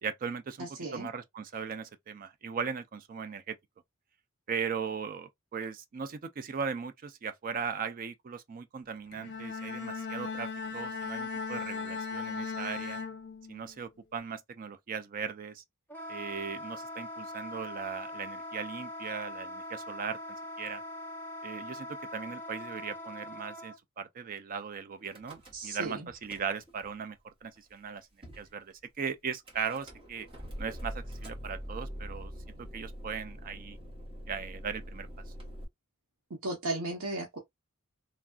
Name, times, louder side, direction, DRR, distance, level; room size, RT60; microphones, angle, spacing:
voice 1, 0.0-3.6 4.5-13.0 13.5-15.6 16.1-20.2 20.6-20.8 21.4-28.1 28.4-30.3 30.6-32.3 32.6-33.8 34.3-35.1, right 6 dB, 40° right, 0.4 m, -38 dB
voice 2, 0.6-1.1 25.5-26.1 36.4-37.4, right 2 dB, 70° right, 0.8 m, -35 dB
Bowed string instrument, 9.1-13.8, left 4 dB, 55° left, 0.6 m, -37 dB
Wind instrument woodwind instrument, 15.9-23.7, left 1 dB, 10° left, 0.6 m, -42 dB
Car / Engine starting / Idling, 25.1-25.8 26.1-26.9 27.6-27.7 27.8-27.9 28.2-28.5 29.5-35.6, equal, 25° right, 1.1 m, -44 dB
3.3 x 2.3 x 2.3 m
head